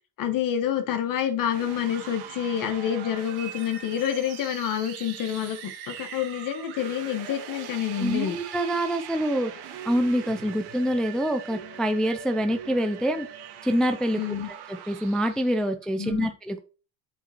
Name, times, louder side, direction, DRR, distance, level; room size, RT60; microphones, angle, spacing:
voice 1, 0.2-8.4 14.1-14.5 16.0-16.3, left 9 dB, 50° left, 7 dB, 1.3 m, -28 dB
sound 1, 1.5-15.6, right 9 dB, 70° right, 1.8 m, -41 dB
voice 2, 8.0-9.5 9.9-13.3 13.6-14.2 14.5-16.6, equal, ahead, 7 dB, 0.3 m, -26 dB
7.9 x 5.0 x 4.4 m, 0.34 s
cardioid pair, 170°, 41 cm